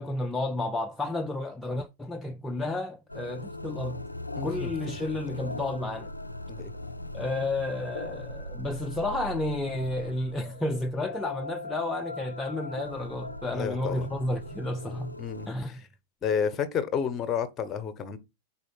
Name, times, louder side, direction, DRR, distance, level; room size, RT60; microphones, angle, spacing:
voice 1, 0.0-4.0 4.4-6.1 7.1-15.2 15.5-15.8, left 2 dB, 10° left, 0.5 m, -32 dB
sound 1, 3.1-15.5, left 2 dB, 85° left, 0.5 m, -39 dB
voice 2, 4.4-5.0 6.5-6.7 13.4-14.1 15.2-15.8 16.2-18.2, left 7 dB, 25° left, 1.1 m, -31 dB
4.9 x 4.5 x 5.6 m
figure-of-eight pair, 90°, 0 cm